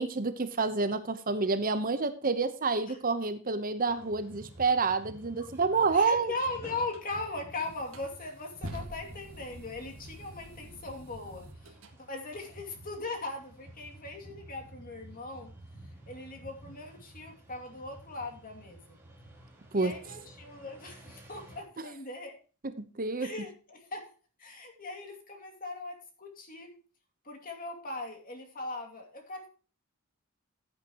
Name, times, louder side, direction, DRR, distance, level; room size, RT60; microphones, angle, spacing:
voice 1, 0.0-6.3 19.7-19.9 23.0-23.3, right 4 dB, 40° right, 11 dB, 0.9 m, -28 dB
sound 1, 3.9-21.6, right 1 dB, 10° right, 3.5 m, -52 dB
voice 2, 5.4-11.8 12.1-15.5 16.1-19.0 19.7-22.4 23.2-24.1 24.4-26.8 27.2-29.5, left 2 dB, 40° left, 3 dB, 2.5 m, -40 dB
sound 2, 6.9-7.1 7.7-11.9, right 1 dB, 60° right, 2.0 m, -45 dB
15.5 x 8.9 x 3.0 m, 0.36 s
head